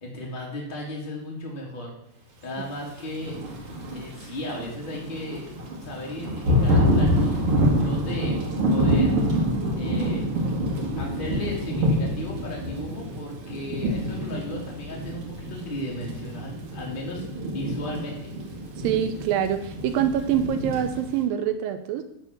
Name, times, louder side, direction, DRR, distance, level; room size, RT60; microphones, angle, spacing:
voice 1, 0.0-1.9 2.4-3.4 3.9-8.4 8.7-9.2 9.7-10.3 11.0-18.3, left 1 dB, 20° left, -2 dB, 1.8 m, -35 dB
Thunder / Rain, 3.1-21.2, equal, 45° right, 2.2 m, -26 dB
voice 2, 18.8-22.0, right 9 dB, 80° right, 9 dB, 2.3 m, -25 dB
11.5 x 4.0 x 7.2 m, 0.77 s
omnidirectional pair, 4.2 m